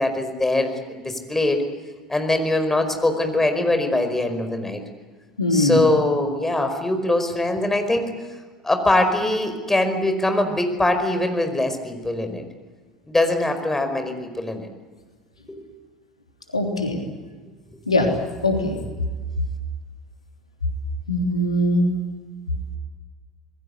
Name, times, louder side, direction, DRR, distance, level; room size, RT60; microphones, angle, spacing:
voice 1, 0.0-1.6 2.1-4.8 5.5-8.1 8.6-12.4 13.1-14.7 15.5-15.6, left 2 dB, 10° left, 7 dB, 5.0 m, -22 dB
voice 2, 5.4-5.8 16.5-17.0 17.9-18.1 18.4-18.7 21.1-21.9, left 1 dB, 85° left, 3 dB, 3.3 m, -21 dB
26.5 x 21.5 x 8.2 m, 1.4 s
figure-of-eight pair, 70°, 3 cm